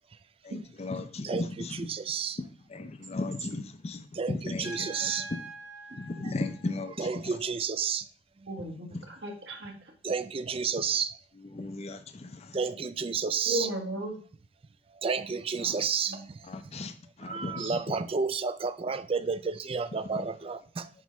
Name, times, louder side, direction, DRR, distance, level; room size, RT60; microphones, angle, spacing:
voice 1, 0.4-1.9 2.7-4.0 4.3-5.4 6.0-7.1 8.9-9.0 11.5-12.6 15.6-15.8 16.5-16.9 17.2-17.8 20.1-20.3, left 2 dB, 35° left, 0.5 m, -36 dB
voice 2, 1.2-2.4 4.1-5.3 6.2-6.3 7.0-8.1 8.4-8.5 10.0-11.1 12.5-13.7 15.0-16.3 17.2-20.9, right 5 dB, 30° right, 0.4 m, -31 dB
Trumpet, 4.6-7.3, right 2 dB, 75° left, 1.8 m, -45 dB
voice 3, 8.5-9.7 13.5-14.2 17.6-17.8, right 1 dB, 80° right, 1.6 m, -35 dB
7.5 x 4.7 x 3.1 m
head